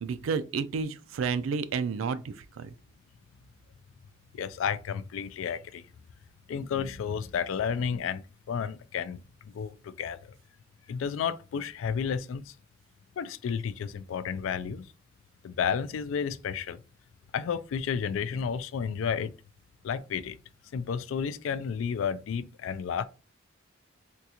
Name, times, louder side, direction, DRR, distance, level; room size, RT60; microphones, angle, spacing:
voice 1, 0.0-2.7, right 5 dB, 80° right, 0.3 m, -31 dB
voice 2, 4.3-5.8 6.5-10.2 10.9-12.5 13.2-14.9 15.4-16.8 17.3-19.3 19.8-20.4 20.7-23.1, left 7 dB, 80° left, 0.3 m, -32 dB
3.7 x 2.3 x 2.8 m
head